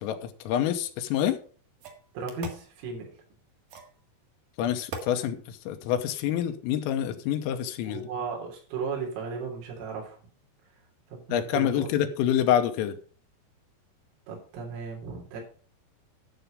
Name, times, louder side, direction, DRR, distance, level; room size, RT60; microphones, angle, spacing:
voice 1, 0.0-1.4 4.6-8.1 11.3-13.0, left 10 dB, 90° left, 3.5 m, -27 dB
sound 1, 1.1-1.2 1.8-2.7 3.7-4.0 4.9-5.1, right 3 dB, 60° right, 2.7 m, -39 dB
voice 2, 2.1-3.1 7.9-10.2 11.1-11.9 14.3-15.4, right 4 dB, 80° right, 6.0 m, -35 dB
12.0 x 6.9 x 5.3 m
omnidirectional pair, 5.9 m